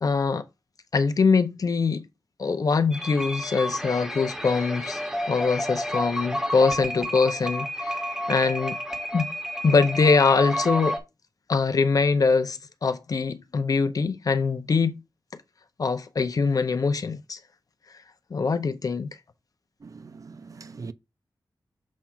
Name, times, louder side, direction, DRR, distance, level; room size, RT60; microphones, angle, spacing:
voice 1, 0.0-0.4 0.9-2.0 2.4-5.0 5.3-8.0 8.3-8.8 9.1-9.3 9.6-11.0 11.5-15.0 15.8-17.4 18.3-19.1, left 4 dB, 50° left, 0.6 m, -23 dB
sound 1, 2.9-11.0, equal, 5° right, 1.3 m, -30 dB
voice 2, 19.8-20.9, right 4 dB, 50° right, 0.6 m, -41 dB
7.2 x 2.5 x 5.6 m
wide cardioid pair, 140°, 8 cm